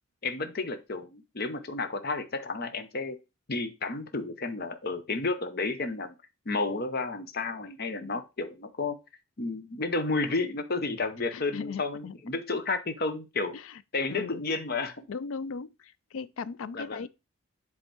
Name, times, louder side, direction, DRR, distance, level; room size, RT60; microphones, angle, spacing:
voice 1, 0.2-3.2 3.5-6.1 6.5-9.0 9.4-13.5 13.9-15.1 16.7-17.1, left 3 dB, 45° left, 0.8 m, -31 dB
voice 2, 11.3-12.2 13.5-13.8 14.1-14.4 15.1-17.1, left 5 dB, 70° left, 0.4 m, -38 dB
8.0 x 3.6 x 4.4 m
head